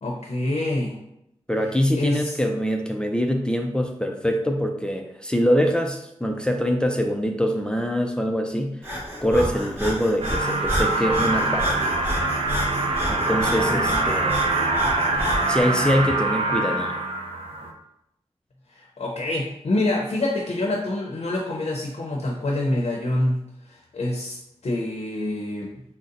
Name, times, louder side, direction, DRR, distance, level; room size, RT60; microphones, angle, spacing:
voice 1, 0.0-1.0 1.9-2.4 13.5-14.0 18.7-23.4 23.7-25.8, left 1 dB, 70° left, -1 dB, 0.7 m, -26 dB
voice 2, 1.5-8.8 9.2-11.7 13.1-14.5 15.5-16.9, equal, 5° left, 3 dB, 0.4 m, -24 dB
Breathing, 8.8-15.6, equal, 20° right, 1.2 m, -30 dB
sound 1, 10.2-17.7, right 2 dB, 55° right, 0.6 m, -24 dB
3.9 x 2.1 x 3.9 m, 0.80 s
wide cardioid pair, 85°, 12 cm